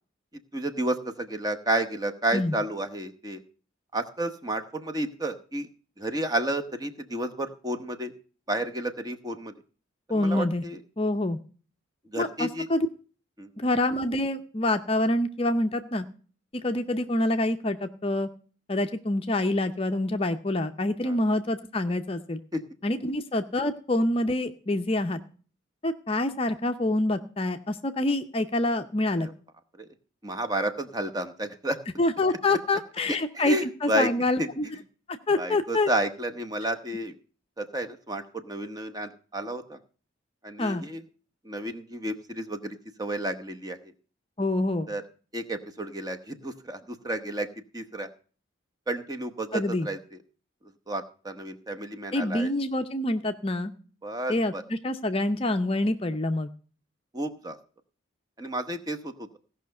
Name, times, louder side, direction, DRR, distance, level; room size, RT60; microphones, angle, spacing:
voice 1, 0.5-3.4 3.9-5.7 6.0-8.1 8.5-9.5 10.1-10.8 12.1-12.7 13.4-13.5 21.0-21.2 22.5-22.6 29.2-29.3 29.8-29.9 30.2-31.8 32.3-32.4 33.1-33.2 33.4-34.1 34.4-34.5 35.4-37.1 37.6-39.8 40.4-41.0 41.4-43.8 44.9-45.0 45.3-47.5 47.7-48.1 48.9-50.2 50.9-52.5 54.0-54.6 57.1-57.6 58.4-59.3, right 1 dB, 20° right, 6 dB, 0.9 m, -31 dB
voice 2, 10.1-10.6 11.0-11.4 12.2-12.9 13.6-16.1 16.5-18.3 18.7-22.4 22.8-25.2 25.8-29.3 32.0-33.6 33.8-34.7 35.1-35.9 40.6-40.8 44.4-44.9 49.5-49.9 52.1-53.7 54.3-56.5, left 2 dB, 25° left, 7 dB, 0.6 m, -26 dB
16.5 x 5.7 x 6.4 m, 0.40 s
head